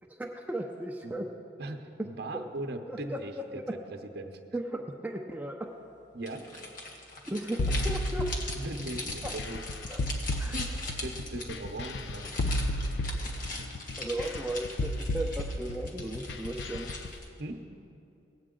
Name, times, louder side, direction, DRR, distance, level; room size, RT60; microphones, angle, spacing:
voice 1, 0.1-1.3 2.9-3.4 4.5-5.7 7.3-8.3 9.2-9.3 9.9-10.0 10.4-10.5 14.0-16.9, right 1 dB, 10° right, 0 dB, 0.5 m, -36 dB
voice 2, 1.6-3.6 3.9-4.4 6.1-6.6 8.6-9.6 10.0-10.7 11.0-12.5 17.4-17.6, right 2 dB, 65° right, 5 dB, 0.8 m, -39 dB
sound 1, 6.2-17.4, left 2 dB, 50° left, 1.5 m, -41 dB
sound 2, 7.6-17.1, left 1 dB, 70° left, 0.5 m, -33 dB
18.0 x 7.9 x 3.8 m, 2.6 s
head